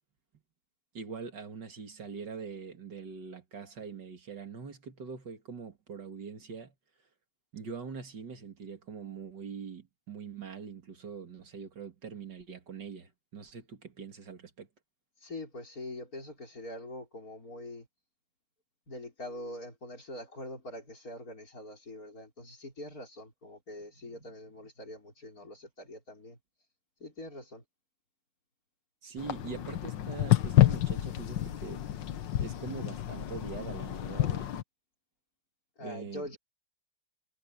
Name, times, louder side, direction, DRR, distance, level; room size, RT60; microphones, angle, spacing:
voice 1, 0.9-6.7 7.5-14.7 29.0-31.8 32.4-34.5 35.8-36.4, right 5 dB, 70° right, 2.9 m, -43 dB
voice 2, 15.2-17.9 18.9-26.4 27.0-27.6 35.8-36.4, left 1 dB, 50° left, 5.6 m, -44 dB
sound 1, 29.2-34.6, left 13 dB, 85° left, 1.7 m, -29 dB
omnidirectional pair, 1.9 m